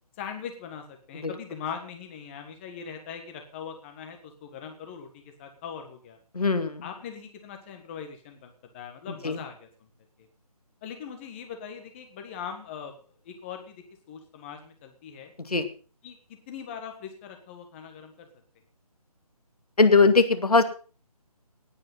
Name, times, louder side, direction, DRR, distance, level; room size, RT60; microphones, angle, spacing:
voice 1, 0.2-6.2 6.8-9.7 10.8-12.9 13.2-15.3 16.0-16.2 16.5-18.3, left 7 dB, 20° left, 5 dB, 1.6 m, -41 dB
voice 2, 6.3-6.9 9.2-9.4 15.4-15.7 19.8-20.6, left 4 dB, 75° left, 9 dB, 2.3 m, -21 dB
18.0 x 9.0 x 5.5 m, 0.38 s
figure-of-eight pair, 155°, 20 cm